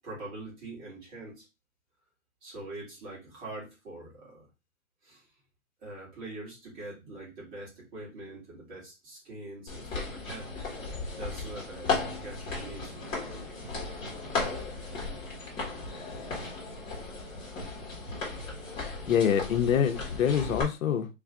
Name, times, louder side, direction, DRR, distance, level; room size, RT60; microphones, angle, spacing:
voice 1, 0.0-1.5 2.4-4.5 5.0-5.3 5.8-10.5 11.1-12.9, right 2 dB, 35° right, 1.9 m, -43 dB
sound 1, 9.7-20.6, left 3 dB, 10° left, 1.0 m, -36 dB
voice 2, 19.1-21.1, left 8 dB, 85° left, 0.7 m, -25 dB
3.3 x 2.4 x 3.6 m
hypercardioid pair, 155°, 40 cm